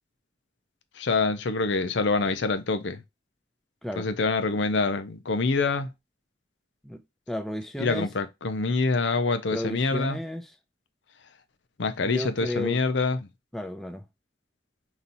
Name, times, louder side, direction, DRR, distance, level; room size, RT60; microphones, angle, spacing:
voice 1, 1.0-3.0 4.0-5.9 7.8-10.2 11.8-13.2, left 3 dB, 85° left, 0.6 m, -26 dB
voice 2, 7.3-8.1 9.5-10.5 12.0-12.8 13.5-14.1, left 1 dB, ahead, 0.4 m, -32 dB
5.3 x 2.9 x 2.6 m
head